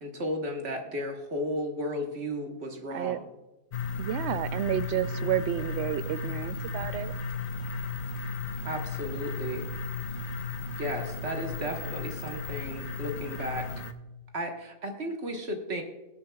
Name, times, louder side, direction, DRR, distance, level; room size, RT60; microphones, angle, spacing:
voice 1, 0.0-3.3 8.6-9.7 10.8-13.7 14.3-15.8, equal, 45° right, 3 dB, 1.5 m, -34 dB
sound 1, 3.7-13.9, left 4 dB, 85° left, 0.3 m, -35 dB
voice 2, 4.0-7.1, right 12 dB, 65° right, 14 dB, 0.6 m, -30 dB
21.0 x 8.3 x 2.3 m, 1.1 s
omnidirectional pair, 1.6 m